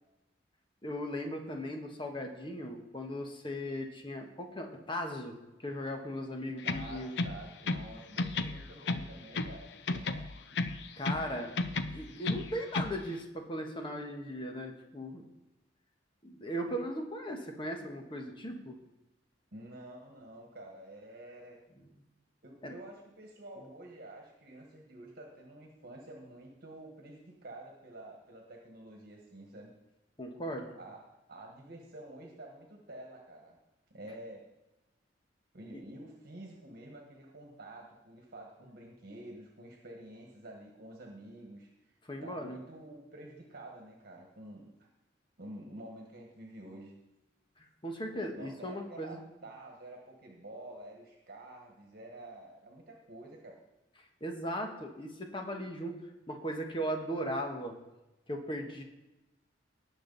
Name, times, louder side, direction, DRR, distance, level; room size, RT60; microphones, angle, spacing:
voice 1, 0.8-7.2 11.0-11.5 11.9-15.2 16.2-18.8 21.9-22.0 22.6-22.7 30.2-30.7 42.0-42.6 47.6-49.2 54.2-57.8 58.3-58.8, equal, 30° left, 3 dB, 1.4 m, -38 dB
voice 2, 6.5-10.2 12.0-12.2 19.5-21.6 22.4-29.7 30.7-33.6 33.9-34.5 35.5-41.9 42.2-44.9 45.4-46.9 48.3-53.6, right 1 dB, 55° right, 0 dB, 1.5 m, -49 dB
sound 1, 6.6-7.9 8.2-9.6 9.9-11.3 11.6-13.0, left 3 dB, 65° left, 0.6 m, -33 dB
18.0 x 6.2 x 4.1 m, 0.98 s
head